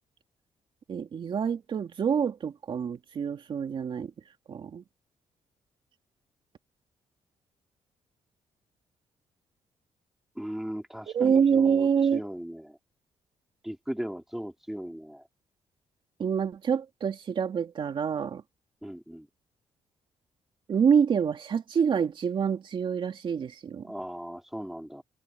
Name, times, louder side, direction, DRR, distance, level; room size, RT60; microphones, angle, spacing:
voice 1, 0.9-4.1 4.5-4.8 11.1-12.2 16.2-18.4 20.7-23.9, right 7 dB, 45° right, 2.9 m, -26 dB
voice 2, 10.3-12.8 13.6-15.3 18.8-19.3 23.8-25.0, equal, 5° right, 3.1 m, -38 dB
cardioid pair, 135°, 11 cm